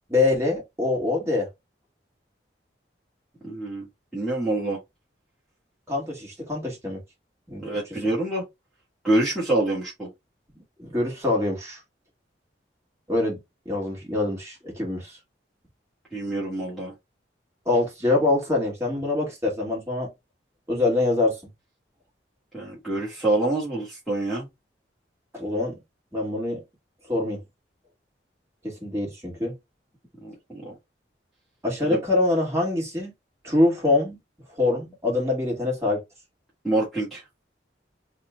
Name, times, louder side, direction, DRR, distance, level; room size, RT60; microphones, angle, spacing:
voice 1, 0.1-1.5 5.9-7.0 7.5-7.6 10.8-11.8 13.1-13.4 13.7-15.2 17.7-20.1 20.7-21.4 25.3-25.8 26.1-26.6 27.1-27.4 28.6-29.5 31.6-33.1 33.4-34.2 34.6-36.0, left 2 dB, 15° right, 2.0 m, -24 dB
voice 2, 3.4-3.9 4.1-4.8 7.6-8.4 9.0-10.1 16.1-16.9 22.5-24.5 30.2-30.7 31.8-32.0 36.6-37.2, right 2 dB, ahead, 1.4 m, -26 dB
4.2 x 2.3 x 3.7 m
head